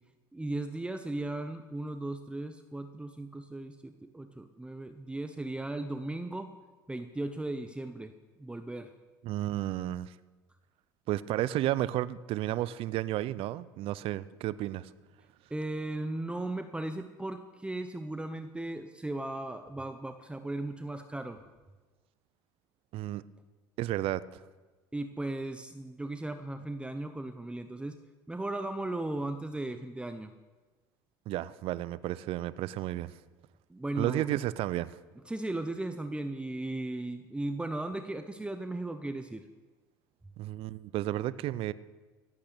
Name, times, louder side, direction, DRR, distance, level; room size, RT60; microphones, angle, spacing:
voice 1, 0.3-6.5 6.9-8.1 8.4-8.9 15.5-21.4 24.9-28.0 28.3-30.3 33.7-34.3 35.3-39.4, right 2 dB, 10° right, 8 dB, 0.8 m, -36 dB
voice 2, 9.2-10.1 11.1-14.9 22.9-23.2 23.8-24.2 31.3-33.1 34.0-35.0 40.4-41.7, right 14 dB, 60° right, 17 dB, 0.5 m, -32 dB
16.5 x 8.6 x 6.7 m, 1.3 s
hypercardioid pair, 75°, 11 cm